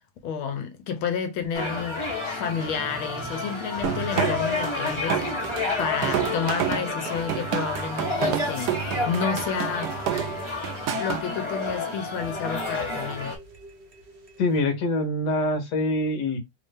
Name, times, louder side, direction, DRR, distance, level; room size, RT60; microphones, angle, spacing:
voice 1, 0.2-5.5 5.8-8.8 9.1-9.9 10.9-13.4, left 6 dB, 75° left, 1.5 m, -30 dB
sound 1, 1.5-13.4, left 3 dB, 20° left, 1.0 m, -30 dB
sound 2, 2.6-14.6, right 4 dB, 65° right, 0.5 m, -46 dB
sound 3, 3.8-11.2, right 10 dB, 85° right, 0.8 m, -29 dB
voice 2, 14.4-16.4, left 2 dB, 60° left, 1.5 m, -24 dB
3.6 x 2.6 x 3.4 m
omnidirectional pair, 2.3 m